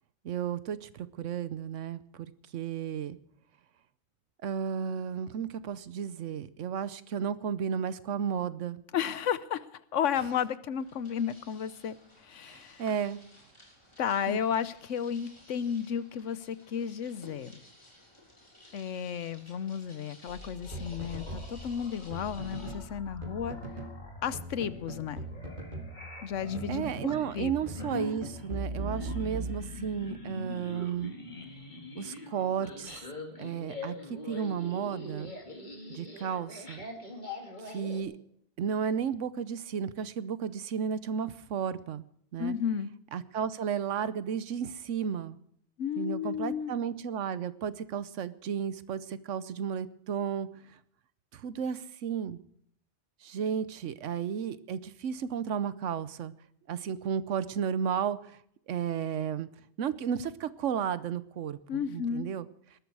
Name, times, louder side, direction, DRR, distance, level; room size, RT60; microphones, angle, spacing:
voice 1, 0.2-3.2 4.4-8.8 12.5-13.2 14.3-14.4 26.7-31.2 32.0-33.0 33.4-35.3 35.9-36.9 37.6-38.1 38.6-42.0 42.3-42.5 43.1-45.4 46.0-50.5 51.3-52.4 53.2-56.3 56.7-58.4 58.7-59.5 59.8-62.5, right 7 dB, 85° right, 15 dB, 1.1 m, -33 dB
voice 2, 8.9-9.7 9.9-12.0 12.2-12.8 14.0-17.5 18.7-23.6 24.2-25.2 26.2-27.5 42.4-42.9 45.8-46.7 61.7-62.3, left 8 dB, 90° left, 15 dB, 1.2 m, -33 dB
sound 1, 10.7-22.7, left 1 dB, 25° left, 3.7 m, -56 dB
sound 2, 20.3-38.0, left 2 dB, 40° left, 2.4 m, -43 dB
sound 3, 20.7-22.9 23.2-24.0 24.3-27.3 27.7-30.1, right 2 dB, 45° right, 2.1 m, -40 dB
19.0 x 13.0 x 4.7 m, 0.67 s
omnidirectional pair, 1.2 m